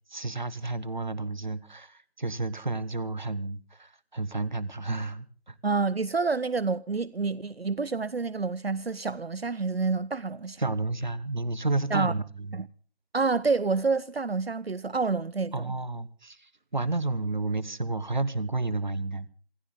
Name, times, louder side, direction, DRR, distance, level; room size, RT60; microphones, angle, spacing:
voice 1, 0.1-5.5 10.6-12.6 15.5-19.3, right 2 dB, 45° right, 1.1 m, -31 dB
voice 2, 5.6-10.6 11.9-12.1 12.5-12.7 13.1-15.7, right 4 dB, 70° right, 0.8 m, -28 dB
27.5 x 13.0 x 3.7 m
figure-of-eight pair, 175°, 32 cm